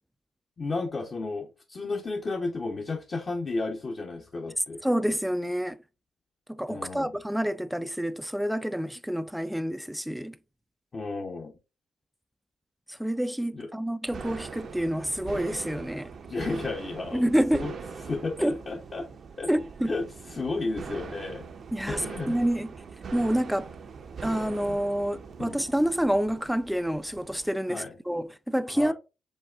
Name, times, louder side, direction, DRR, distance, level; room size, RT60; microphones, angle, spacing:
voice 1, 0.6-4.8 6.7-7.2 10.9-11.5 13.5-13.7 16.3-17.7 18.1-19.1 19.4-19.5 19.9-21.5 21.9-22.4 24.7-24.8 25.4-25.6 27.7-27.9 28.7-28.9, left 3 dB, 35° left, 0.7 m, -33 dB
voice 2, 4.8-5.8 6.5-10.4 12.9-16.1 17.1-17.7 18.4-18.6 19.5-19.9 21.7-22.0 22.3-22.7 23.1-23.7 24.2-28.9, equal, ahead, 0.3 m, -28 dB
sound 1, 14.1-27.5, right 5 dB, 50° right, 0.6 m, -41 dB
5.3 x 3.5 x 2.4 m
cardioid pair, 90°, 0 cm